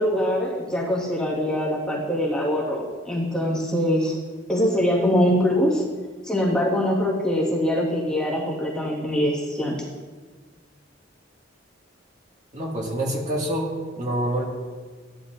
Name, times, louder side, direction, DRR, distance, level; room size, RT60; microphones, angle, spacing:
voice 1, 0.0-4.2 4.5-5.8 6.2-9.8, equal, 5° left, -5 dB, 1.8 m, -23 dB
voice 2, 12.5-14.4, right 1 dB, 40° right, -2 dB, 2.1 m, -26 dB
14.0 x 10.5 x 2.6 m, 1.4 s
head